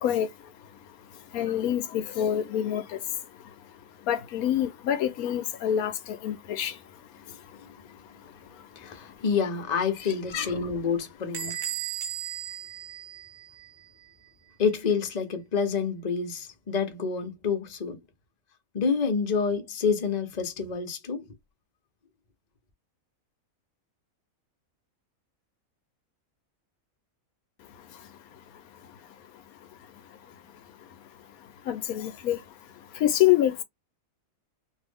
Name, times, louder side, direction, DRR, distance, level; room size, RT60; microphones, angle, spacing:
voice 1, 1.3-2.8 4.1-5.9 6.2-6.7 10.3-10.5 31.7-32.4 33.0-33.6, left 11 dB, 90° left, 1.1 m, -25 dB
voice 2, 8.8-11.6 14.6-18.0 18.7-21.3, left 5 dB, 35° left, 0.8 m, -28 dB
Bell / Door, 11.3-13.8, right 9 dB, 65° right, 0.5 m, -36 dB
2.7 x 2.5 x 3.4 m
omnidirectional pair, 1.5 m